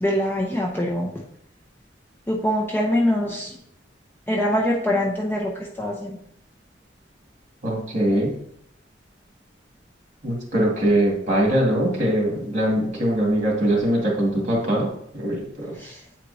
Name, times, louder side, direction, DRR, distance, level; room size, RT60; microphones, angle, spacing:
voice 1, 0.0-1.2 2.3-3.6 4.3-5.5 5.8-6.2 15.8-15.9, left 1 dB, 10° left, -2 dB, 0.7 m, -23 dB
voice 2, 7.6-8.4 10.2-14.9 15.1-15.7, right 1 dB, 40° right, -2 dB, 2.2 m, -22 dB
9.0 x 4.4 x 2.7 m, 0.72 s
head